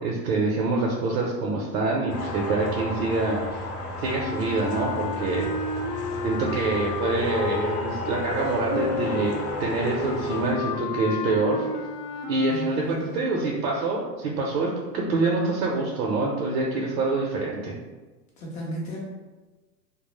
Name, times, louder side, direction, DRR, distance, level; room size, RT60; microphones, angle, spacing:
voice 1, 0.0-3.4 4.0-5.5 6.2-9.3 9.6-11.7 12.3-17.8, right 3 dB, 75° right, -2 dB, 0.7 m, -26 dB
sound 1, 2.1-10.5, left 1 dB, 45° left, 0.7 m, -33 dB
sound 2, 4.0-12.7, left 3 dB, 80° left, 0.5 m, -32 dB
sound 3, 8.7-12.5, left 3 dB, 30° right, 0.5 m, -39 dB
voice 2, 12.5-13.2 18.4-19.0, right 1 dB, 15° left, -3 dB, 0.4 m, -34 dB
2.1 x 2.0 x 3.0 m, 1.2 s
hypercardioid pair, 105°, 49 cm